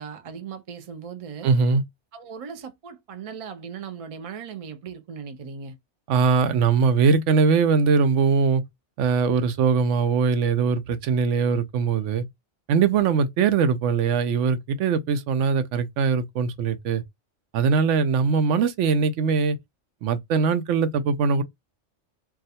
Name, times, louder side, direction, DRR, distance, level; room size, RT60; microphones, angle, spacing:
voice 1, 0.0-1.5 2.1-5.8, right 6 dB, 55° right, 0.3 m, -38 dB
voice 2, 1.4-1.8 6.1-8.6 9.0-12.2 12.7-17.0 17.5-19.6 20.0-21.4, right 5 dB, 85° right, 0.9 m, -21 dB
2.4 x 2.3 x 4.0 m
omnidirectional pair, 1.2 m